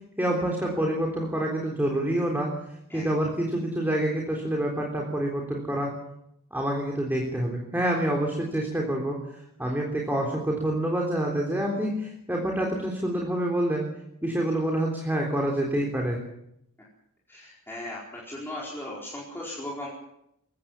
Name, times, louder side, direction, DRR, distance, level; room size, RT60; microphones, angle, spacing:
voice 1, 0.2-2.5 2.9-5.9 6.5-9.2 9.6-13.8 14.2-16.2, right 1 dB, 10° right, 0 dB, 3.7 m, -27 dB
voice 2, 17.3-19.9, left 1 dB, 10° left, -6 dB, 4.6 m, -37 dB
22.5 x 17.0 x 7.4 m, 0.79 s
head